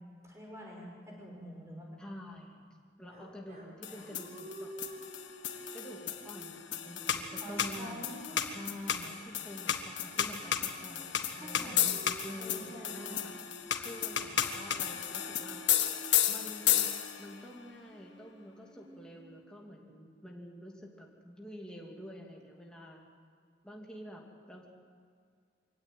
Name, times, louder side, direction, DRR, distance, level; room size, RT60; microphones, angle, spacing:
voice 1, 0.0-1.9 7.4-8.5 11.4-11.9 12.4-13.3, equal, 15° right, -2 dB, 5.8 m, -46 dB
voice 2, 2.0-4.7 5.7-11.8 12.2-13.3 13.8-15.6 16.3-23.1 23.6-24.2 24.5-24.7, equal, 5° left, -2 dB, 2.7 m, -48 dB
sound 1, 3.1-11.1 11.7-19.8, right 1 dB, 40° right, 4.7 m, -51 dB
sound 2, 3.8-17.3, left 10 dB, 80° left, 1.6 m, -33 dB
24.5 x 16.5 x 9.4 m, 2.2 s
head